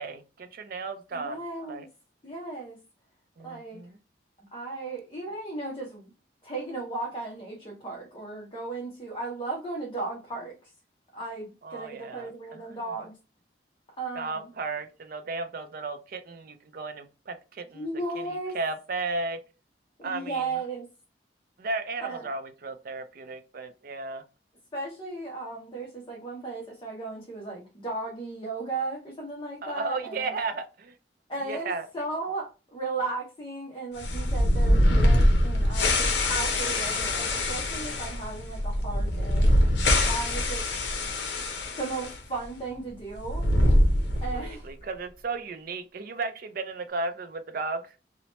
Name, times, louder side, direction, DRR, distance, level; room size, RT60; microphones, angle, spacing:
voice 1, 0.0-1.4 1.7-1.9 3.4-4.0 11.6-12.8 14.2-17.9 18.2-19.4 20.0-20.4 21.6-24.2 29.6-30.9 31.5-31.9 44.3-47.8, right 3 dB, 55° right, 0.4 m, -34 dB
voice 2, 1.1-1.9 2.2-2.8 3.4-3.8 4.5-6.1 6.4-10.7 11.1-13.1 14.0-14.5 17.7-18.6 20.0-20.9 22.0-22.3 24.7-30.4 31.3-39.6 40.0-40.7 41.8-43.4 44.2-44.7, right 3 dB, 30° left, 0.7 m, -35 dB
sound 1, 34.0-42.2 42.4-42.5 43.2-44.5, left 1 dB, 75° left, 0.6 m, -24 dB
2.9 x 2.1 x 2.9 m
head